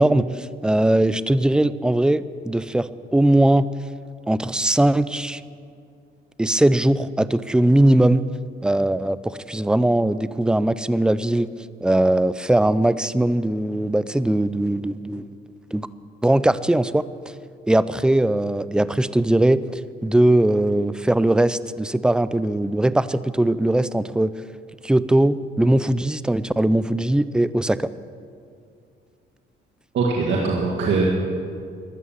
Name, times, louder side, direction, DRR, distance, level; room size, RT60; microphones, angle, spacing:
voice 1, 0.0-3.7 4.3-5.4 6.4-8.2 8.6-11.5 11.8-15.3 15.7-15.9 16.2-17.1 17.7-24.3 24.8-27.9, right 1 dB, 5° right, 16 dB, 0.4 m, -20 dB
voice 2, 29.9-31.1, right 4 dB, 65° right, -3 dB, 2.0 m, -21 dB
15.0 x 11.0 x 7.3 m, 2.3 s
cardioid pair, 90°, 20 cm